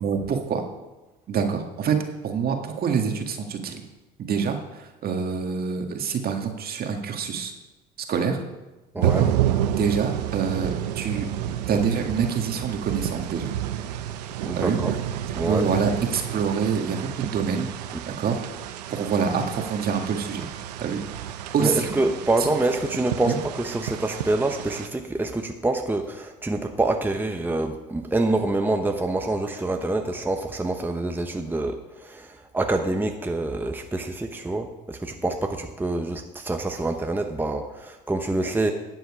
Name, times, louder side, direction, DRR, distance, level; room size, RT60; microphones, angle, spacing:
voice 1, 0.0-0.6 1.3-2.0 2.2-3.8 4.2-7.5 8.1-8.4 9.0-9.3 9.7-13.5 14.6-15.0 15.4-17.7 18.2-18.4 18.9-20.4 20.8-21.9 22.4-22.5 23.3-23.4, right 6 dB, 50° right, 4 dB, 1.7 m, -26 dB
voice 2, 8.9-9.3 14.4-14.9 15.3-15.7 21.6-38.7, right 2 dB, 10° right, 4 dB, 0.9 m, -26 dB
sound 1, 9.0-24.9, right 11 dB, 90° right, 0.7 m, -30 dB
12.0 x 7.9 x 4.9 m, 1.1 s
supercardioid pair, 75°, 20 cm